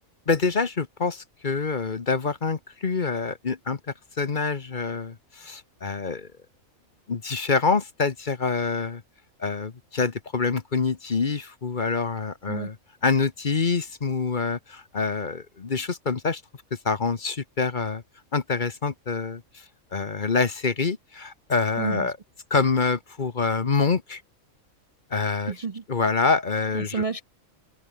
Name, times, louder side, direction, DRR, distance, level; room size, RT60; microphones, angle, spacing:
voice 1, 0.3-3.8 4.2-6.3 7.1-9.0 9.4-12.7 13.0-16.4 16.8-18.0 18.3-19.4 19.9-22.2 22.5-24.2 25.1-25.5 25.9-27.0, left 4 dB, 40° left, 1.2 m, -26 dB
voice 2, 21.8-22.1 25.5-25.8 26.7-27.2, right 5 dB, 35° right, 0.6 m, -30 dB
omnidirectional pair, 1.4 m